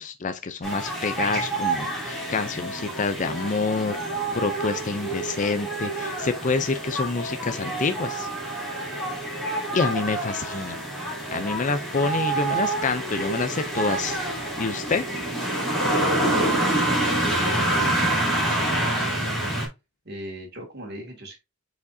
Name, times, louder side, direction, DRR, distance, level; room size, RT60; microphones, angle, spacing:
voice 1, 0.0-4.0 4.3-8.3 9.7-10.8 11.3-14.2 14.6-15.1, left 4 dB, 35° left, 0.5 m, -27 dB
sound 1, 0.6-19.7, right 1 dB, ahead, 3.2 m, -27 dB
voice 2, 17.7-19.5 20.0-21.4, right 1 dB, 50° right, 2.4 m, -39 dB
8.4 x 5.0 x 2.7 m
head